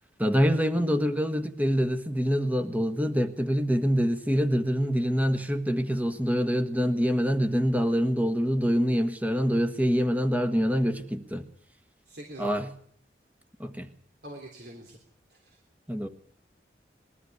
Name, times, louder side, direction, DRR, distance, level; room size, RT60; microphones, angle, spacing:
voice 1, 0.2-11.4 12.4-12.7 13.6-13.9 15.9-16.1, equal, 10° right, 8 dB, 1.6 m, -25 dB
voice 2, 12.1-12.6 14.2-15.0 15.3-15.4, equal, 60° right, 1 dB, 3.5 m, -43 dB
21.0 x 14.0 x 9.6 m, 0.62 s
head